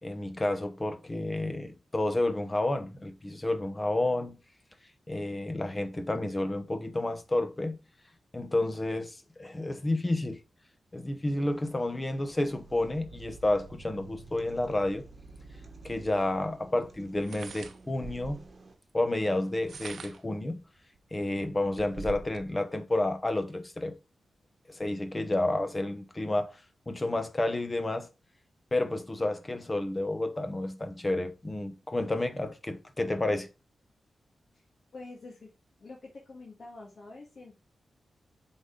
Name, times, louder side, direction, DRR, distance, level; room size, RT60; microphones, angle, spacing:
voice 1, 0.0-4.4 5.1-7.8 8.3-10.4 10.9-15.0 15.8-18.4 18.9-20.6 21.1-23.9 24.7-26.6 26.9-28.1 28.7-33.5, left 2 dB, 20° left, 0.9 m, -30 dB
sound 1, 11.4-18.8, right 3 dB, 35° right, 1.4 m, -51 dB
sound 2, 15.8-15.9 17.2-18.5 19.5-20.3 21.0-21.1 21.4-22.5, right 4 dB, 65° right, 0.7 m, -43 dB
voice 2, 34.9-35.5 35.8-37.5, left 3 dB, 50° left, 1.7 m, -46 dB
7.1 x 4.1 x 3.7 m
wide cardioid pair, 135°, 0 cm